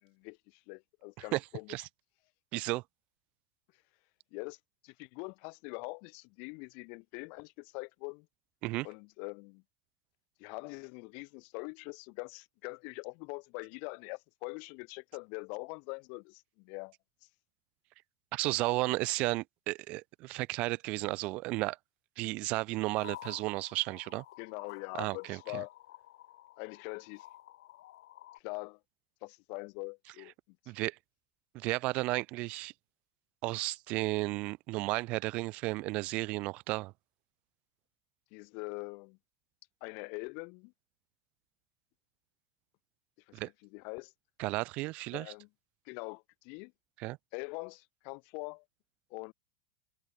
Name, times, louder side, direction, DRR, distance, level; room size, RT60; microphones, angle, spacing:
voice 1, 0.0-1.8 4.3-4.6 4.8-8.3 8.8-9.6 10.4-16.9 24.4-25.7 26.6-27.3 28.3-28.8 29.2-30.3 38.3-39.2 39.8-40.7 43.3-43.4 43.7-44.1 45.1-45.5 45.9-46.7 47.3-48.6 49.1-49.3, left 35 dB, 55° left, 5.8 m, -43 dB
voice 2, 2.5-2.8 8.6-8.9 18.3-21.8 22.2-24.2 25.0-25.6 30.7-31.0 31.5-32.7 33.4-36.9 43.3-43.5 44.4-45.3 47.0-47.2, right 21 dB, 50° right, 1.2 m, -33 dB
sound 1, 22.9-28.4, left 14 dB, 85° left, 3.7 m, -52 dB
supercardioid pair, 140°, 3 cm